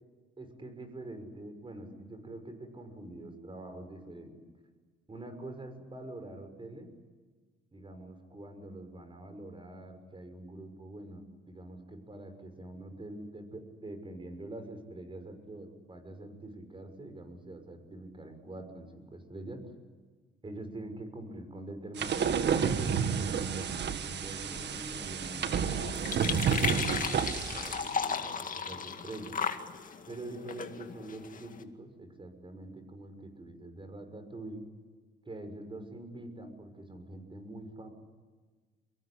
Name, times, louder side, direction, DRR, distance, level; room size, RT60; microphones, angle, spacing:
voice 1, 0.4-4.3 5.1-6.9 7.7-19.6 20.4-29.4 30.1-34.6 35.2-37.9, right 1 dB, 25° right, 7 dB, 6.5 m, -45 dB
sound 1, 22.0-27.9, right 7 dB, 60° right, 1.9 m, -30 dB
sound 2, 24.5-31.6, left 6 dB, 40° left, 2.1 m, -36 dB
24.5 x 22.5 x 9.9 m, 1.4 s
cardioid pair, 90°, 20 cm